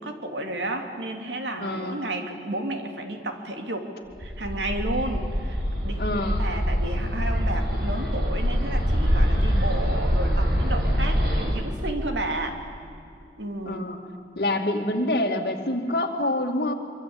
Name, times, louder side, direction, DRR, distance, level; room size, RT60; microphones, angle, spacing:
voice 1, 0.0-3.9 4.2-6.0 6.4-12.6 13.4-13.9, right 1 dB, 90° right, 5 dB, 2.9 m, -32 dB
voice 2, 1.6-2.0 6.0-6.4 13.7-14.0 14.4-16.7, left 1 dB, 60° left, 4 dB, 2.5 m, -26 dB
Bird, 4.2-11.4, equal, 60° right, 6.7 m, -24 dB
25.0 x 24.0 x 8.9 m, 2.5 s
head